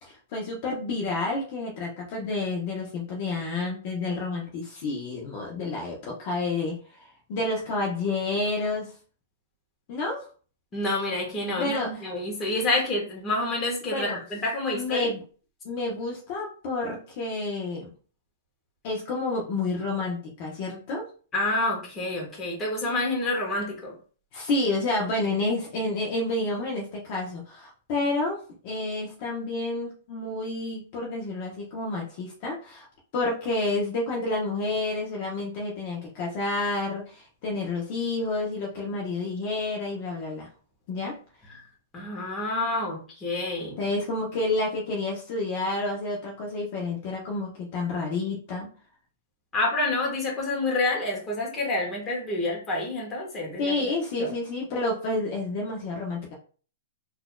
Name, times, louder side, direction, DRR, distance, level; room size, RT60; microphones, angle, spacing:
voice 1, 0.0-8.9 9.9-10.2 11.6-11.9 13.9-14.2 14.7-15.2 15.6-17.9 18.8-21.1 24.3-32.9 33.1-40.5 40.9-41.1 43.8-48.7 53.6-56.3, left 2 dB, 45° left, -2 dB, 0.9 m, -29 dB
voice 2, 10.7-15.1 21.3-24.0 41.5-43.8 49.5-53.8 54.2-54.3, left 2 dB, 20° left, -2 dB, 1.4 m, -28 dB
4.1 x 2.8 x 2.3 m, 0.40 s
hypercardioid pair, 145°, 0 cm